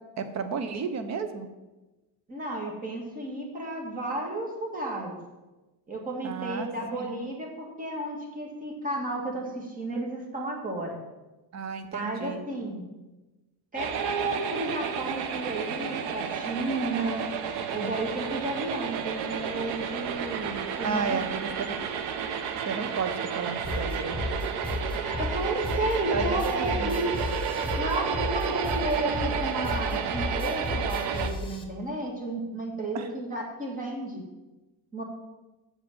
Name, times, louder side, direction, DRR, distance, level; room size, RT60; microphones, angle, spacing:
voice 1, 0.2-1.5 6.2-7.1 11.5-12.5 20.8-21.8 22.7-24.2 26.1-27.1 32.9-33.1, right 5 dB, 45° right, 8 dB, 0.8 m, -33 dB
voice 2, 2.3-5.2 5.9-11.0 11.9-12.9 13.7-17.2 17.7-21.2 25.0-27.1 27.8-34.2 34.9-35.0, right 2 dB, 20° right, 0 dB, 1.7 m, -32 dB
sound 1, 13.8-31.3, right 7 dB, 80° right, 0.8 m, -32 dB
sound 2, 23.6-31.6, left 2 dB, 15° left, 0.8 m, -33 dB
6.8 x 5.2 x 7.1 m, 1.1 s
cardioid pair, 160°, 39 cm